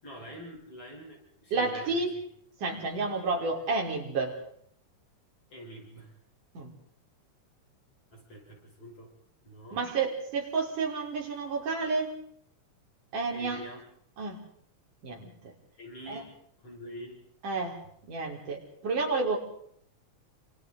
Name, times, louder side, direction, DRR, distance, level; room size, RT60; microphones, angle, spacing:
voice 1, 0.0-2.1 5.5-6.1 8.1-9.1 9.4-9.9 13.3-13.8 15.8-16.3 16.6-17.2, equal, 45° left, -1 dB, 6.6 m, -45 dB
voice 2, 1.5-2.1 2.6-4.4 6.6-6.7 9.7-12.1 13.1-13.6 14.2-14.4 15.0-15.5 16.1-16.2 17.4-17.8 18.0-19.4, right 4 dB, 75° right, 0 dB, 5.5 m, -30 dB
29.0 x 26.5 x 3.9 m, 0.66 s
omnidirectional pair, 3.7 m